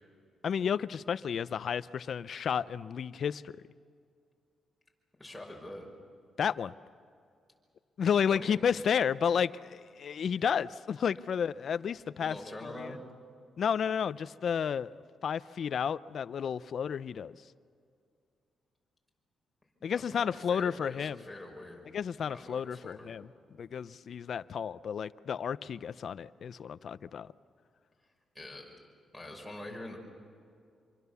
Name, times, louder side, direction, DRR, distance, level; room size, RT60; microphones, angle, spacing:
voice 1, 0.4-3.5 6.4-6.7 8.0-12.4 12.8-12.9 13.6-14.9 15.2-17.4 19.8-21.2 21.9-23.3 23.6-27.3, left 7 dB, 60° left, 15 dB, 0.6 m, -31 dB
voice 2, 5.2-5.9 8.2-8.5 12.2-13.0 19.9-21.9 22.3-23.2 28.3-28.8 29.1-30.0, left 1 dB, 5° left, -1 dB, 5.9 m, -45 dB
26.5 x 23.5 x 7.0 m, 2.4 s
cardioid pair, 105°, 0 cm